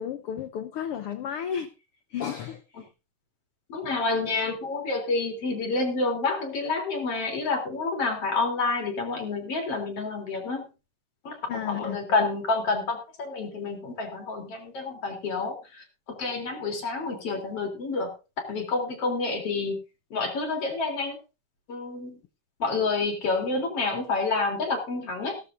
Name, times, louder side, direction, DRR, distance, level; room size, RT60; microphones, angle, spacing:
voice 1, 0.0-1.7 2.1-2.9 11.5-12.0, left 8 dB, 90° left, 9 dB, 1.2 m, -33 dB
voice 2, 3.7-10.6 11.2-18.1 18.4-19.8 20.1-21.2 21.7-22.2 22.6-25.4, left 3 dB, 45° left, 4 dB, 4.2 m, -28 dB
17.0 x 13.0 x 2.6 m, 0.30 s
omnidirectional pair, 3.7 m